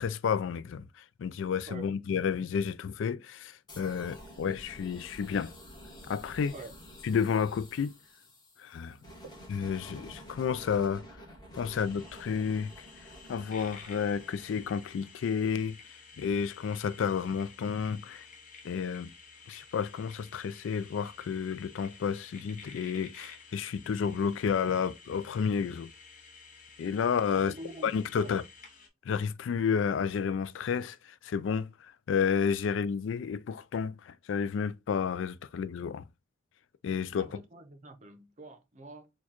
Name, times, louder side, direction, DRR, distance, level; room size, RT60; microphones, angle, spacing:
voice 1, 0.0-5.5 6.0-6.5 7.0-7.9 8.6-9.0 9.5-11.2 11.5-12.7 13.0-15.8 16.2-18.3 18.6-19.1 19.5-25.9 26.8-27.5 27.8-28.4 29.0-36.1 36.8-37.3, left 6 dB, 70° left, 0.3 m, -31 dB
sound 1, 3.7-15.5, equal, 20° left, 1.2 m, -50 dB
sound 2, 11.8-28.9, left 5 dB, 45° left, 0.9 m, -52 dB
voice 2, 27.3-28.4 37.2-39.1, right 2 dB, 40° right, 0.6 m, -46 dB
4.4 x 2.3 x 2.9 m
head